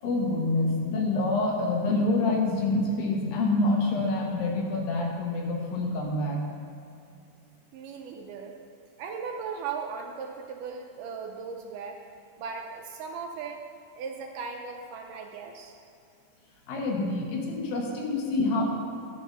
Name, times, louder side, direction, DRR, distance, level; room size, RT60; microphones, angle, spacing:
voice 1, 0.0-6.4 16.7-18.6, left 2 dB, 80° left, 0 dB, 3.0 m, -27 dB
voice 2, 7.7-8.5 9.0-12.0 12.4-13.6 14.0-15.7, right 5 dB, 75° right, 3 dB, 2.1 m, -37 dB
12.0 x 5.8 x 5.4 m, 2.6 s
omnidirectional pair, 4.1 m